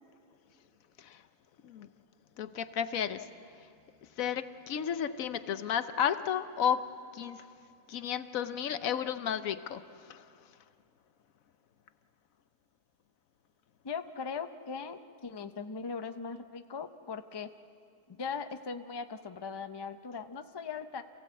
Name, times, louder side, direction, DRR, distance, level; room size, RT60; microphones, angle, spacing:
voice 1, 2.4-3.3 4.2-7.4 7.9-10.3, left 8 dB, 70° left, 12 dB, 1.1 m, -33 dB
voice 2, 13.8-17.5 18.1-21.0, left 5 dB, 40° left, 9 dB, 0.3 m, -39 dB
27.5 x 16.5 x 8.2 m, 2.4 s
omnidirectional pair, 1.6 m